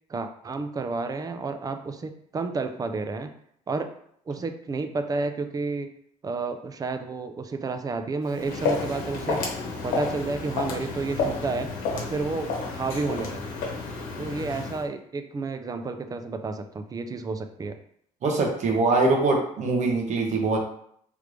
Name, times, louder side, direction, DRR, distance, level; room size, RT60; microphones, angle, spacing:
voice 1, 0.1-3.3 3.7-3.9 4.3-5.9 6.2-9.5 9.8-13.5 14.2-17.8, right 3 dB, 25° right, 7 dB, 0.5 m, -31 dB
Walk footsteps, 8.2-14.8, left 4 dB, 80° left, 1.0 m, -31 dB
voice 2, 18.2-20.6, right 3 dB, 60° right, 1 dB, 1.1 m, -23 dB
3.7 x 3.3 x 3.2 m, 0.66 s
cardioid pair, 90°, 14 cm